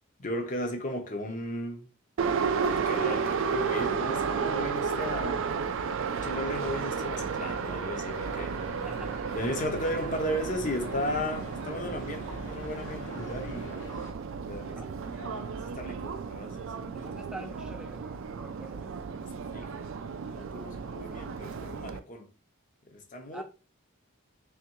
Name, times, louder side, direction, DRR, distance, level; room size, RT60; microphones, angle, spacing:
voice 1, 0.2-1.9 2.6-5.5 6.0-8.6 9.3-13.8 14.4-14.8 15.1-17.1 19.2-19.9 20.3-22.3 22.9-23.4, left 1 dB, 35° left, 0.7 m, -36 dB
Subway metro underground, 2.2-22.0, right 5 dB, 65° right, 0.3 m, -33 dB
sound 1, 8.1-14.1, left 1 dB, 65° left, 1.1 m, -44 dB
voice 2, 8.8-9.2 14.6-14.9 16.9-18.9 23.3-23.4, right 2 dB, 5° right, 0.5 m, -45 dB
3.6 x 3.4 x 3.0 m
head